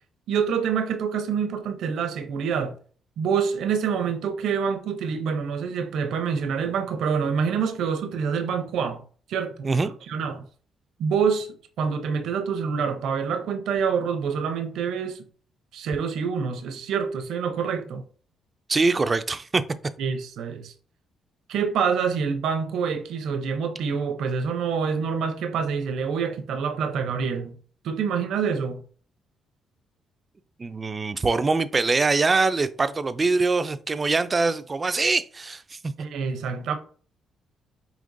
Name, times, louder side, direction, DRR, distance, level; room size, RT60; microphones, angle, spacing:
voice 1, 0.3-2.8 3.2-9.0 9.3-9.7 10.1-10.4 11.0-15.2 15.7-18.0 20.0-20.7 21.5-27.6 27.8-28.8 36.0-36.8, right 6 dB, 75° right, 0.6 m, -26 dB
voice 2, 18.7-19.6 30.6-35.9, right 3 dB, 30° right, 0.3 m, -23 dB
5.1 x 2.9 x 2.6 m
cardioid pair, 90°, 0 cm